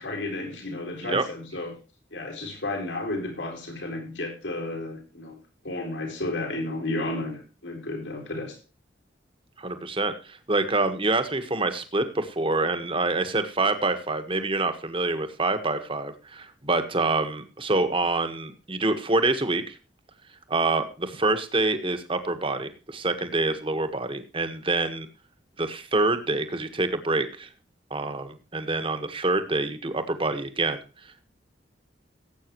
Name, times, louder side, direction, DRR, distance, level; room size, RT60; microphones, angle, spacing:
voice 1, 0.0-1.8 2.1-5.4 5.6-8.6, left 2 dB, 80° left, 2 dB, 4.3 m, -32 dB
voice 2, 9.6-19.8 20.5-25.1 25.6-27.5 27.9-30.8, right 2 dB, 30° right, 8 dB, 1.5 m, -26 dB
18.0 x 8.5 x 3.1 m, 0.33 s
head